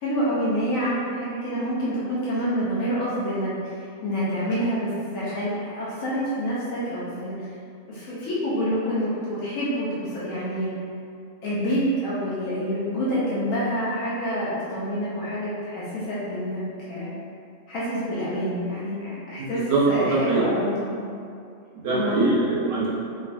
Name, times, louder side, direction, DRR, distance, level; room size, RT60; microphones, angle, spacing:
voice 1, 0.0-3.7 4.0-7.5 7.9-10.7 11.4-17.1 17.7-21.1 21.9-22.3, equal, 80° left, -9 dB, 1.0 m, -27 dB
voice 2, 19.4-20.4 21.7-22.9, right 2 dB, 65° right, -6 dB, 0.7 m, -23 dB
3.1 x 2.4 x 2.5 m, 2.4 s
omnidirectional pair, 1.4 m